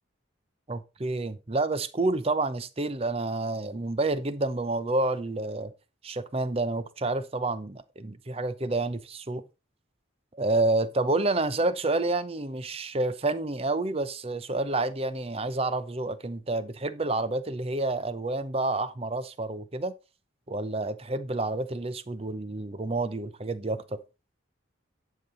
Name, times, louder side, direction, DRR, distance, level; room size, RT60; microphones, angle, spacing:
voice 1, 0.7-5.7 6.0-9.4 10.3-19.9 20.5-24.0, right 2 dB, 30° right, 0.7 m, -29 dB
11.0 x 5.7 x 3.9 m
head